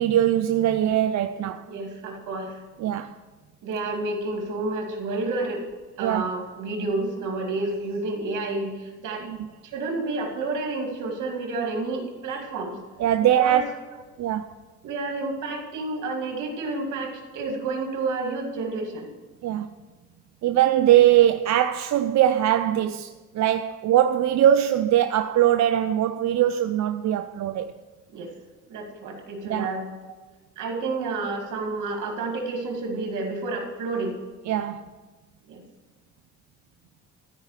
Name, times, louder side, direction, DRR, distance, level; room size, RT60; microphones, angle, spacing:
voice 1, 0.0-1.6 2.8-3.2 6.0-6.3 9.2-9.4 13.0-13.6 14.2-14.5 19.4-19.7 20.4-27.7 29.5-29.7 34.5-34.8, right 11 dB, 65° right, 0.6 m, -21 dB
voice 2, 1.7-2.6 3.6-5.6 6.0-9.2 9.6-12.8 13.2-13.6 14.8-19.1 28.1-28.3 28.6-29.9 30.6-34.2 35.5-35.6, right 3 dB, 85° right, 2.4 m, -30 dB
13.5 x 4.9 x 8.1 m
cardioid pair, 90°, 30 cm